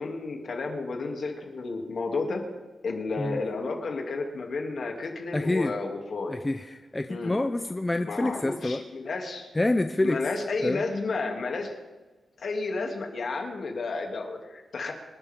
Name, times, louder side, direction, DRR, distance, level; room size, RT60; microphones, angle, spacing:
voice 1, 0.0-2.4 2.8-6.3 7.1-7.4 8.0-9.5 10.0-11.7 12.4-14.9, left 3 dB, 55° left, 1 dB, 2.7 m, -32 dB
voice 2, 5.3-5.8 6.3-8.8 9.6-10.2 10.6-10.8, left 2 dB, 15° left, 7 dB, 0.5 m, -27 dB
26.5 x 11.5 x 3.7 m, 1.2 s
wide cardioid pair, 150°, 0 cm